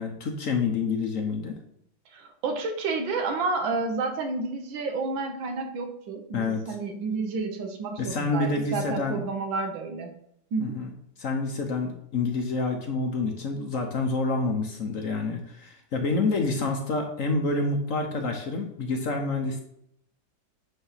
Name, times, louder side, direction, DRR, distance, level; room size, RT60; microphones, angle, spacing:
voice 1, 0.0-1.5 6.3-6.7 8.0-9.2 10.6-10.9 11.2-19.6, left 3 dB, 55° left, 4 dB, 1.0 m, -28 dB
voice 2, 2.1-10.1 10.5-10.8, right 3 dB, 75° right, 4 dB, 1.8 m, -30 dB
8.6 x 3.4 x 5.6 m, 0.74 s
omnidirectional pair, 2.1 m